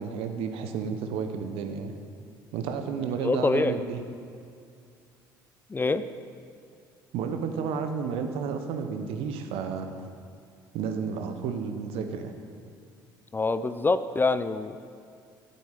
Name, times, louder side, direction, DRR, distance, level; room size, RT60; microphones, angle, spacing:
voice 1, 0.0-1.9 2.5-4.0 7.1-9.9 10.7-12.3, right 6 dB, 60° right, 7 dB, 0.9 m, -31 dB
voice 2, 3.2-3.8 5.7-6.0 13.3-14.8, left 3 dB, 20° left, 12 dB, 0.4 m, -25 dB
8.5 x 8.2 x 6.7 m, 2.4 s
figure-of-eight pair, 55°, 11 cm